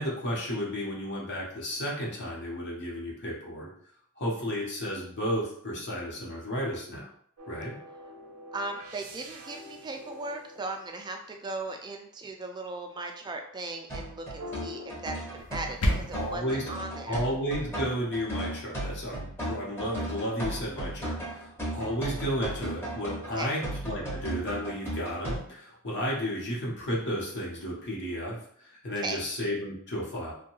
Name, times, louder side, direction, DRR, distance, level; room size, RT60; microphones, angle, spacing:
voice 1, 0.0-3.7 4.2-7.1 7.5-7.8 16.1-16.6 17.1-30.3, equal, 55° left, -4 dB, 0.9 m, -33 dB
sound 1, 7.4-11.5 14.4-15.9 16.4-18.2, left 2 dB, 80° right, 0.5 m, -46 dB
voice 2, 8.5-17.2 23.3-23.5 29.0-29.2, right 2 dB, 20° right, 4 dB, 0.3 m, -37 dB
sound 2, 13.9-25.4, right 1 dB, 10° left, 0.7 m, -36 dB
sound 3, 15.4-16.4, equal, 85° left, 0.5 m, -29 dB
2.7 x 2.2 x 2.9 m, 0.64 s
head